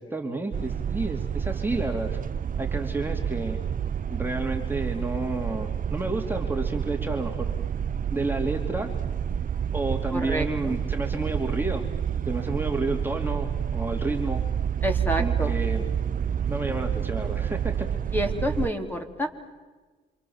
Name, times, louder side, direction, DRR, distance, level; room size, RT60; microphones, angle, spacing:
voice 1, 0.0-2.2 2.6-3.6 4.1-7.5 8.1-8.9 9.7-11.8 12.3-14.4 15.2-15.9 16.5-17.9, right 2 dB, 10° right, 1 dB, 3.0 m, -30 dB
sound 1, 0.5-18.7, right 8 dB, 45° right, 0.8 m, -29 dB
voice 2, 10.1-10.8 14.8-15.5 18.1-19.3, equal, 10° left, 3 dB, 3.6 m, -28 dB
28.0 x 27.0 x 7.4 m, 1.3 s
cardioid pair, 90°, 20 cm